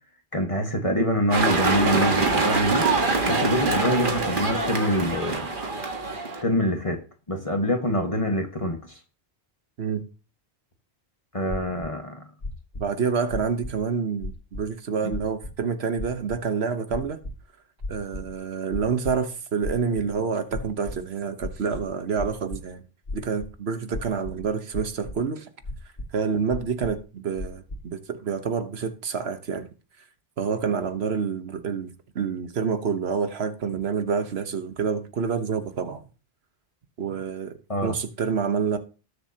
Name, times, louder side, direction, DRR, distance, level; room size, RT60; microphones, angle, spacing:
voice 1, 0.3-2.9 3.2-5.5 6.4-7.0 7.3-9.0 11.3-12.3 15.0-15.1 37.7-38.0, left 1 dB, 35° left, 1.5 m, -25 dB
sound 1, 1.3-6.4, right 3 dB, 55° right, 1.6 m, -24 dB
sound 2, 11.5-11.9 12.4-12.9 13.3-13.8 14.2-14.6 15.1-15.5 16.0-16.4 16.9-17.4 17.8-18.3 18.7-19.2 19.6-20.2 20.5-21.0 21.4-22.6 23.1-23.5 23.9-24.5 24.7-25.2 25.6-26.1 26.5-27.0 27.4-27.8, left 2 dB, 60° left, 2.1 m, -34 dB
voice 2, 12.8-17.2 17.9-22.8 23.1-25.5 26.1-29.7 30.4-36.0 37.0-38.8, right 6 dB, 85° right, 1.3 m, -28 dB
19.5 x 6.7 x 2.8 m
omnidirectional pair, 1.0 m